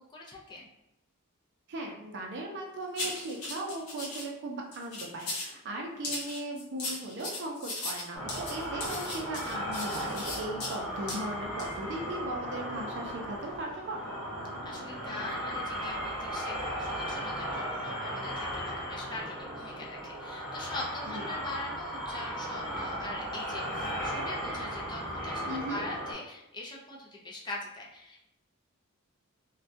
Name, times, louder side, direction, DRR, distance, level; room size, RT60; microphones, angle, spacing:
voice 1, 0.1-0.7 14.6-28.2, left 2 dB, 20° left, -3 dB, 0.4 m, -42 dB
voice 2, 1.7-14.1 21.1-21.2 25.5-25.9, right 1 dB, 55° right, 1 dB, 0.4 m, -38 dB
sound 1, 3.0-4.3 4.7-5.5 6.0-10.8 11.1-11.2 11.6-11.7, left 2 dB, 75° left, 0.7 m, -37 dB
sound 2, 8.1-26.1, equal, ahead, 1.0 m, -36 dB
2.3 x 2.1 x 2.6 m, 0.85 s
head